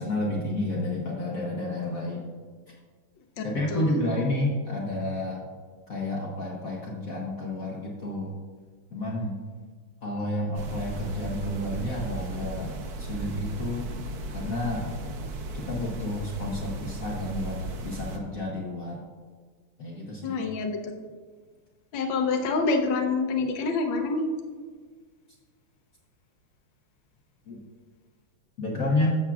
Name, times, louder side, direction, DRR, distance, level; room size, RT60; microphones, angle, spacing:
voice 1, 0.0-2.3 3.4-5.4 5.9-8.3 8.9-9.3 10.0-12.7 13.0-13.9 14.3-14.9 15.5-19.0 19.8-20.4 27.5-27.6 28.6-29.2, left 1 dB, 50° left, -3 dB, 1.2 m, -30 dB
voice 2, 3.4-3.9 20.2-20.8 21.9-24.3, left 4 dB, 70° left, 2 dB, 1.5 m, -27 dB
sound 1, 10.5-18.2, right 2 dB, 60° right, 1.1 m, -36 dB
13.0 x 7.2 x 2.4 m, 1.6 s
omnidirectional pair, 2.3 m